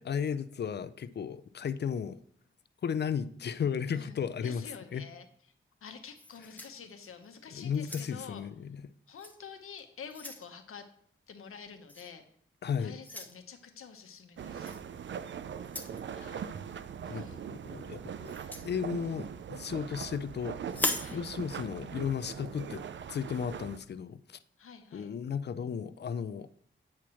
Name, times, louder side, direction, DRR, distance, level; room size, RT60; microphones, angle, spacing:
voice 1, 0.0-2.2 2.8-4.6 4.9-5.1 7.5-8.9 12.6-13.0 16.2-16.3 17.1-18.3 18.6-22.8 23.1-24.4 24.9-26.5, left 7 dB, 55° left, 13 dB, 0.4 m, -35 dB
voice 2, 3.9-5.3 5.8-8.4 9.1-10.9 11.3-12.2 12.8-14.7 16.1-16.5 17.0-17.4 21.0-21.3 24.6-25.1, left 6 dB, 85° left, 6 dB, 0.8 m, -48 dB
sound 1, 6.2-7.3 7.7-8.4 9.2-9.4 9.8-10.5 11.9-12.1 13.0-13.4 14.6-14.8 15.6-16.0 18.3-18.7 20.7-21.2, left 1 dB, 10° left, 0.6 m, -37 dB
sound 2, 14.4-23.8, right 8 dB, 60° right, 0.4 m, -41 dB
8.4 x 3.0 x 6.2 m, 0.62 s
wide cardioid pair, 110°, 21 cm